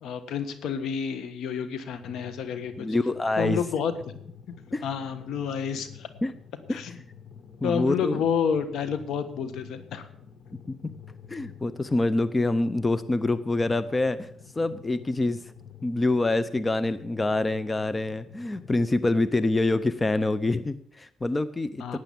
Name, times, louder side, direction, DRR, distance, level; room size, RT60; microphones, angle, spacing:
voice 1, 0.0-2.9 3.4-3.9 4.8-6.1 6.7-6.9 7.6-10.1 21.8-22.0, left 7 dB, 75° left, 11 dB, 1.4 m, -29 dB
sound 1, 2.0-18.9, left 7 dB, 60° left, 1.7 m, -48 dB
voice 2, 2.8-3.6 4.7-4.8 6.2-6.3 6.7-6.8 7.6-8.2 11.3-14.3 14.6-15.4 15.8-22.0, left 2 dB, 20° left, 15 dB, 0.6 m, -26 dB
12.0 x 9.0 x 7.1 m, 0.66 s
cardioid pair, 90°, 0 cm